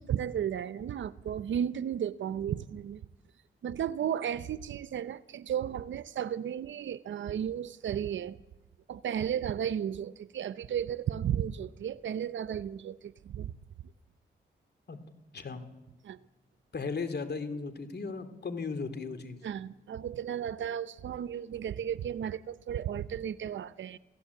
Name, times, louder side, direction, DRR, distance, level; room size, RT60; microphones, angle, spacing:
voice 1, 0.0-3.0 3.6-8.4 8.9-13.5 16.0-16.2 19.4-24.0, right 9 dB, 80° right, 0.7 m, -34 dB
voice 2, 16.7-19.4, left 4 dB, 60° left, 3.1 m, -36 dB
28.0 x 16.5 x 8.4 m
cardioid pair, 55°, 19 cm